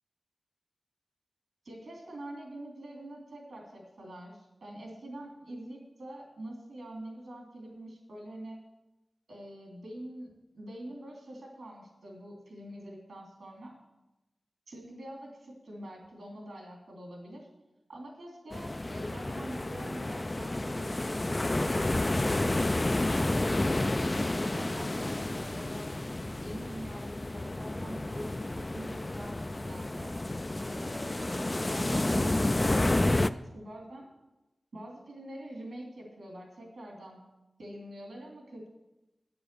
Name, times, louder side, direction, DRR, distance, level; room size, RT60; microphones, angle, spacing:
voice 1, 1.6-8.6 9.3-13.7 14.7-17.5 17.9-22.0 22.3-22.9 23.6-26.0 26.4-30.1 30.7-34.1 34.7-37.2 37.6-38.7, right 1 dB, 85° right, -1 dB, 3.0 m, -45 dB
sound 1, 18.5-33.3, left 2 dB, 30° left, 0.3 m, -30 dB
9.1 x 6.9 x 6.7 m, 0.98 s
wide cardioid pair, 80°, 0 cm